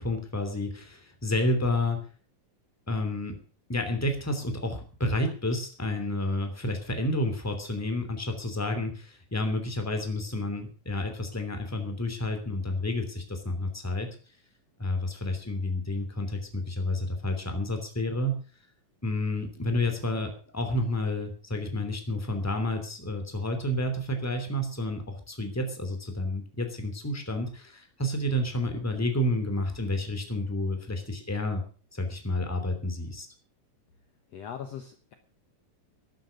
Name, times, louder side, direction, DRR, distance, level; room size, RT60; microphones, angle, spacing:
voice 1, 0.0-2.0 2.9-3.4 3.7-14.1 14.8-18.4 19.0-31.6 31.9-33.3, left 1 dB, 5° left, 6 dB, 2.5 m, -30 dB
voice 2, 34.3-35.1, left 8 dB, 60° left, 7 dB, 2.0 m, -40 dB
13.0 x 12.0 x 6.5 m, 0.40 s
omnidirectional pair, 3.8 m